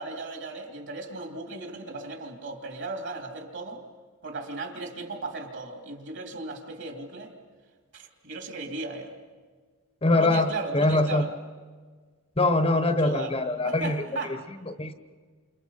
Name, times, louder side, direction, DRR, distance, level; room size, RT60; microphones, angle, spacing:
voice 1, 0.0-3.8 4.2-7.3 7.9-9.1 10.2-11.3 12.9-13.3 13.6-14.4, right 3 dB, 55° right, 4 dB, 3.1 m, -36 dB
voice 2, 10.0-11.2 12.4-14.0 14.7-14.9, left 2 dB, 25° left, 10 dB, 1.0 m, -23 dB
29.5 x 28.0 x 5.7 m, 1.5 s
head